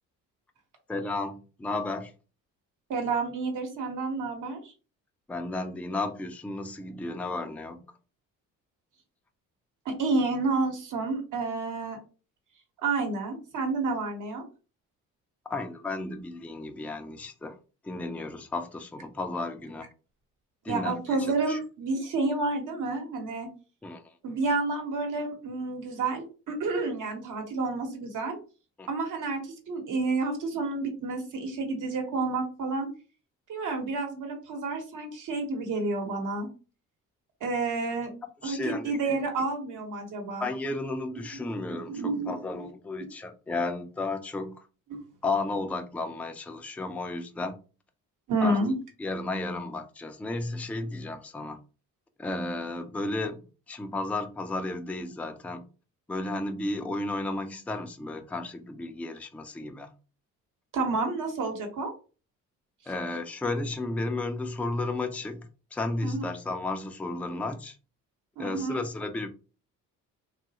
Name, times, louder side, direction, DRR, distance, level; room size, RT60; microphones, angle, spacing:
voice 1, 0.9-2.1 5.3-7.8 15.5-17.6 17.8-19.9 20.6-21.1 21.5-21.6 23.8-24.0 28.8-28.9 38.4-38.9 40.4-44.6 45.2-47.6 48.4-48.6 49.0-51.6 52.2-55.7 56.1-59.9 62.9-67.8 68.4-69.3, left 2 dB, 5° left, 0.4 m, -33 dB
voice 2, 2.9-4.7 9.8-12.0 12.8-14.4 20.7-23.5 24.2-28.4 28.9-32.9 33.5-36.5 37.4-38.1 38.4-40.5 41.3-41.4 41.7-42.4 48.3-48.7 60.7-61.9 66.0-66.2 68.4-68.8, right 3 dB, 65° right, 1.1 m, -30 dB
3.0 x 2.4 x 2.8 m
supercardioid pair, 70°, 34 cm